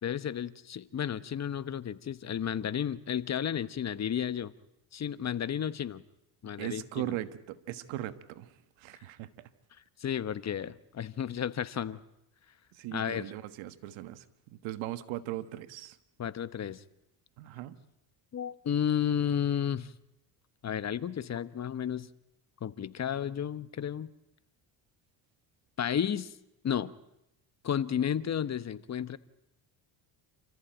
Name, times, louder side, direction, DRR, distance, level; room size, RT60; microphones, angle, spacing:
voice 1, 0.0-4.5 4.9-6.0 6.4-7.1 10.0-12.0 12.9-13.3 16.2-16.8 18.3-19.9 20.6-22.1 22.6-24.1 25.8-26.3 26.6-26.9 27.6-29.2, left 9 dB, 35° left, 15 dB, 1.0 m, -32 dB
voice 2, 6.6-8.5 8.8-9.5 12.7-14.2 14.5-16.0 17.4-17.8, right 14 dB, 85° right, 12 dB, 1.5 m, -39 dB
29.0 x 14.5 x 9.0 m, 0.88 s
cardioid pair, 105°, 45 cm